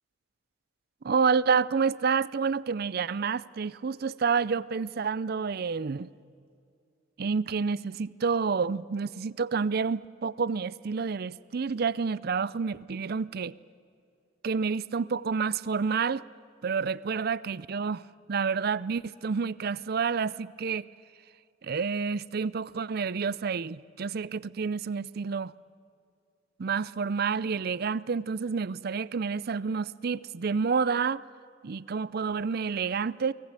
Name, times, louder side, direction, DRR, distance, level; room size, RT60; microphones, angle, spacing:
voice 1, 1.0-6.1 7.2-13.5 14.4-16.2 16.6-18.0 18.3-20.9 21.6-25.5 26.6-31.2 31.6-33.3, right 5 dB, 50° right, 0.5 m, -29 dB
23.5 x 19.5 x 8.9 m
head